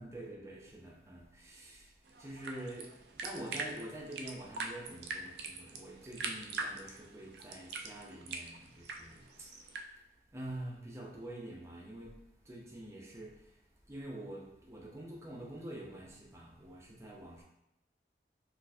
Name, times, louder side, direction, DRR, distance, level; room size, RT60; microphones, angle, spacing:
voice 1, 0.0-17.4, right 1 dB, 15° right, -2 dB, 0.5 m, -47 dB
sound 1, 2.0-9.8, right 4 dB, 70° right, 0.4 m, -43 dB
4.0 x 2.5 x 2.6 m, 0.85 s
head